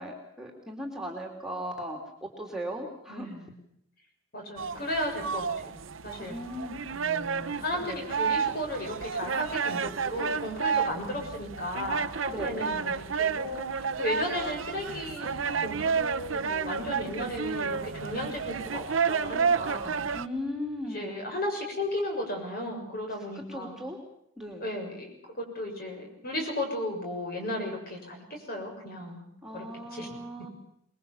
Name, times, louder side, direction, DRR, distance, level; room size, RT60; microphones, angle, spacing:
voice 1, 0.0-2.0 2.4-3.3 6.3-6.8 7.8-8.0 12.3-12.6 20.1-21.1 23.3-24.0 24.4-24.7 29.4-30.5, equal, 5° right, 1 dB, 2.9 m, -37 dB
voice 2, 3.1-3.6 4.3-6.4 6.9-20.0 20.9-23.7 24.6-29.3 29.5-30.2, left 1 dB, 50° left, 2 dB, 6.8 m, -35 dB
sound 1, 4.6-20.3, right 6 dB, 85° right, 0.8 m, -31 dB
24.5 x 21.0 x 7.1 m, 0.70 s
head